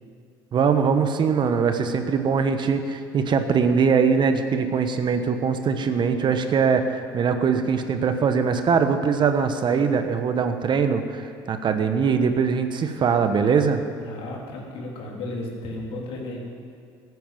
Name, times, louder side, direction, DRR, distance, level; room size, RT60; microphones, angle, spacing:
voice 1, 0.5-13.8, right 6 dB, 45° right, 8 dB, 1.2 m, -22 dB
voice 2, 14.0-16.4, left 2 dB, 65° left, -1 dB, 3.4 m, -34 dB
14.5 x 9.4 x 7.6 m, 2.2 s
supercardioid pair, 75°, 11 cm